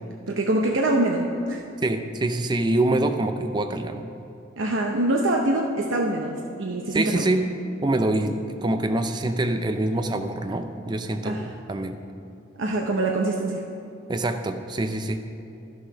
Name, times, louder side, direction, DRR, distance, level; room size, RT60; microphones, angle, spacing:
voice 1, 0.3-1.6 4.6-7.3 11.2-11.5 12.6-13.6, right 1 dB, 80° right, 1 dB, 0.7 m, -24 dB
voice 2, 1.8-4.1 6.9-7.5 7.8-12.0 14.1-15.2, right 2 dB, 20° right, 7 dB, 0.4 m, -25 dB
11.5 x 6.3 x 5.8 m, 2.7 s
head